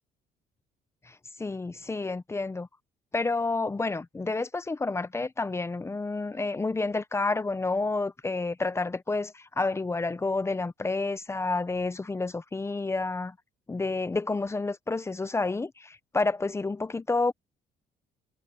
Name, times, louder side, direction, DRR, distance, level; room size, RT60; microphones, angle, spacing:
voice 1, 1.1-2.7 3.1-13.3 13.7-17.3, left 3 dB, 15° left, 0.7 m, -29 dB
cardioid pair, 110°, 17 cm